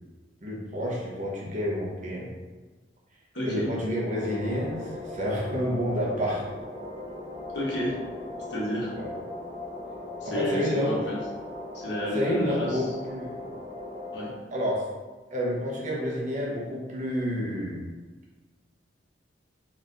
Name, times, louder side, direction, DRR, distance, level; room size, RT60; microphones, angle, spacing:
voice 1, 0.4-2.3 3.4-6.5 10.2-11.0 12.1-13.5 14.5-14.8 15.3-17.8, equal, 40° right, -4 dB, 1.0 m, -29 dB
voice 2, 3.3-3.7 7.5-7.9 8.5-8.9 10.2-11.2 11.7-12.8 14.1-14.3, equal, 65° left, -5 dB, 1.2 m, -30 dB
sound 1, 4.1-14.3, left 2 dB, 15° right, 0.6 m, -39 dB
4.1 x 3.1 x 2.6 m, 1.3 s
head